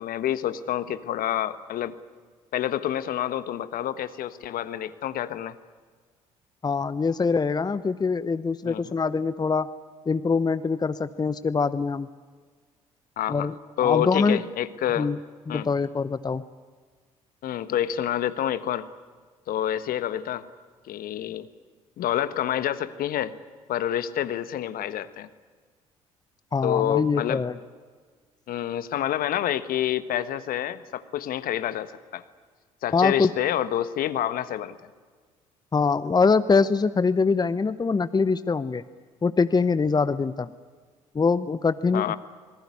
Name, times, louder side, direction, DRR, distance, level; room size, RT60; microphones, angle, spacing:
voice 1, 0.0-2.0 2.5-5.5 8.6-8.8 13.2-13.5 13.8-15.1 15.5-15.7 17.4-18.9 19.5-20.5 20.9-21.5 22.0-23.4 23.7-25.3 26.6-27.4 28.5-32.2 32.8-34.8 41.9-42.2, left 11 dB, 55° left, 13 dB, 1.4 m, -28 dB
voice 2, 6.6-9.7 10.1-12.1 13.3-13.5 13.8-14.4 15.0-15.2 15.5-16.4 26.5-27.6 32.9-33.3 35.7-38.8 39.2-40.5 41.1-42.2, left 4 dB, 25° left, 14 dB, 0.9 m, -23 dB
27.0 x 20.0 x 9.9 m, 1.5 s
hypercardioid pair, 50°, 17 cm